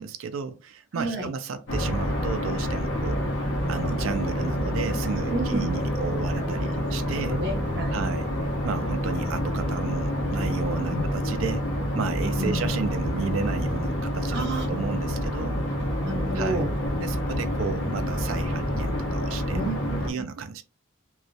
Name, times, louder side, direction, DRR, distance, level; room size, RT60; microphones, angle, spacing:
voice 1, 0.0-7.4 7.9-8.3 8.6-15.6 16.3-16.6 17.0-19.6 20.0-20.6, right 5 dB, 80° right, 0.4 m, -33 dB
voice 2, 0.9-1.3 5.3-5.7 7.2-8.0 10.9-11.1 12.4-12.7 14.3-14.7 16.0-16.7 19.5-20.3, right 1 dB, 55° right, 0.9 m, -30 dB
sound 1, 1.7-20.1, equal, 60° left, 0.7 m, -28 dB
2.3 x 2.0 x 2.6 m
head